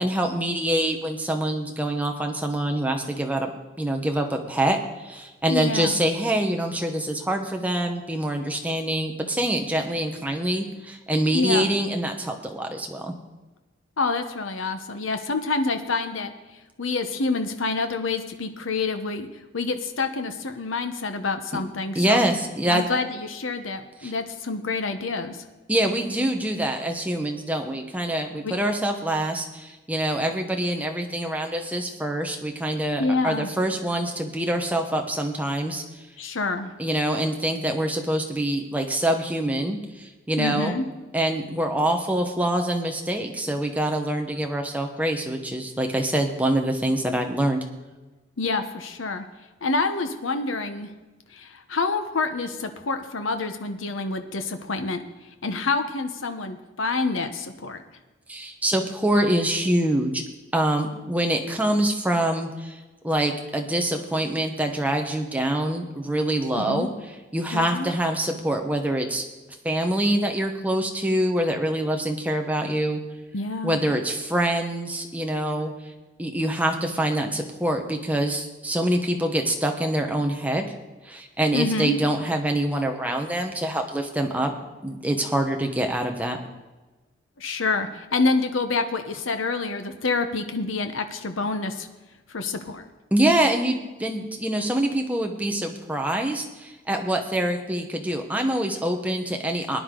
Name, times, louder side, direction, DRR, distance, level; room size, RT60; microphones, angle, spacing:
voice 1, 0.0-3.5 3.8-13.1 21.9-22.9 24.0-24.1 25.7-35.8 36.8-40.8 41.1-47.6 58.3-60.2 60.5-62.7 63.0-66.9 67.3-69.2 69.6-73.0 73.6-75.7 76.2-80.7 81.0-84.5 84.8-86.4 93.1-99.8, right 1 dB, 10° right, 3 dB, 1.1 m, -25 dB
voice 2, 5.5-6.0 11.3-11.7 14.0-16.3 16.8-19.3 19.5-22.3 22.7-25.4 28.4-28.5 33.0-33.5 36.2-36.7 40.4-40.9 48.4-49.3 49.6-50.9 51.3-55.0 55.4-57.8 66.6-66.9 67.5-67.9 73.3-73.8 81.5-82.0 87.4-91.9 92.3-92.9, left 3 dB, 80° left, 8 dB, 1.0 m, -27 dB
18.5 x 10.0 x 3.9 m, 1.2 s
head